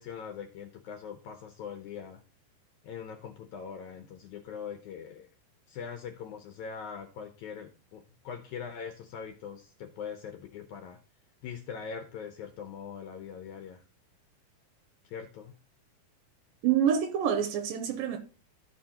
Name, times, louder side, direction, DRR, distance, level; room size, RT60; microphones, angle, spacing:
voice 1, 0.0-2.2 2.8-5.3 5.7-11.0 11.4-13.8 15.0-15.5, left 7 dB, 75° left, 1.8 m, -42 dB
voice 2, 16.6-18.2, right 9 dB, 80° right, 2.3 m, -27 dB
13.5 x 5.0 x 2.8 m
omnidirectional pair, 4.1 m